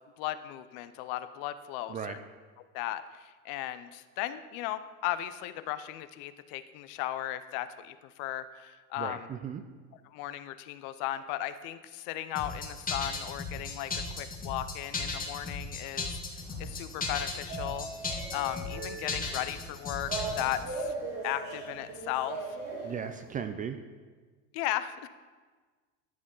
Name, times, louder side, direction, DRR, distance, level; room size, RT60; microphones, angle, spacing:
voice 1, 0.2-2.2 2.7-9.3 10.1-16.2 16.6-17.9 18.3-20.1 20.4-20.9 21.2-22.4 24.5-25.1, left 13 dB, 60° left, 13 dB, 0.7 m, -36 dB
voice 2, 9.0-9.6 22.8-23.8, right 7 dB, 20° right, 9 dB, 0.3 m, -36 dB
sound 1, 12.3-20.6, left 4 dB, 20° left, 1.8 m, -36 dB
sound 2, 16.4-23.4, right 3 dB, 60° right, 3.0 m, -40 dB
13.5 x 6.3 x 3.8 m, 1.4 s
supercardioid pair, 115°, 41 cm